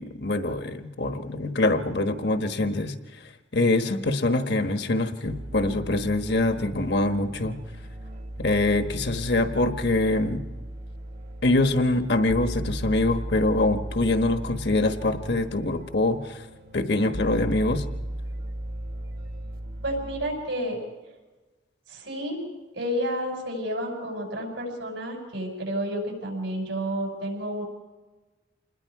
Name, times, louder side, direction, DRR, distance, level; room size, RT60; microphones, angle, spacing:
voice 1, 0.0-2.9 3.5-7.6 8.4-10.4 11.4-16.4 16.7-17.8, left 2 dB, 60° left, 8 dB, 1.2 m, -24 dB
sound 1, 5.2-20.3, right 1 dB, 50° right, 1.5 m, -36 dB
voice 2, 19.8-20.8 21.9-22.4 22.7-27.6, equal, 80° right, 2 dB, 6.1 m, -30 dB
27.0 x 20.5 x 4.8 m, 1.2 s
head